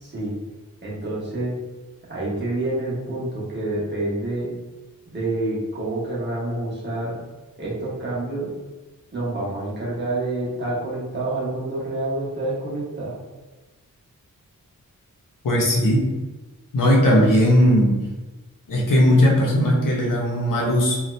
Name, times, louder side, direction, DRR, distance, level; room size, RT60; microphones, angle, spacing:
voice 1, 0.0-0.3 0.8-1.5 2.0-4.5 5.1-7.2 7.6-8.5 9.1-13.2, right 2 dB, 35° right, -7 dB, 1.0 m, -28 dB
voice 2, 15.4-16.1 16.7-18.0 18.7-21.0, equal, 75° left, -3 dB, 0.8 m, -18 dB
2.7 x 2.3 x 3.1 m, 1.2 s
wide cardioid pair, 170°, 33 cm